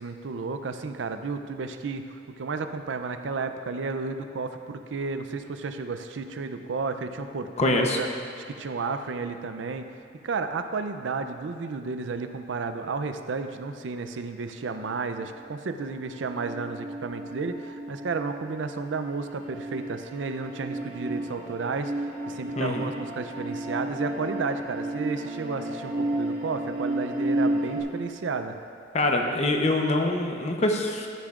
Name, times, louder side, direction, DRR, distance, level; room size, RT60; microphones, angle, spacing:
voice 1, 0.0-8.1 8.5-9.8 10.2-28.6, right 4 dB, 90° right, 8 dB, 0.5 m, -32 dB
voice 2, 7.6-8.0 22.6-22.9 28.9-31.1, left 2 dB, 35° left, 3 dB, 0.8 m, -24 dB
sound 1, 15.9-27.8, right 1 dB, 35° right, 2.0 m, -32 dB
12.5 x 9.7 x 2.5 m, 2.5 s
head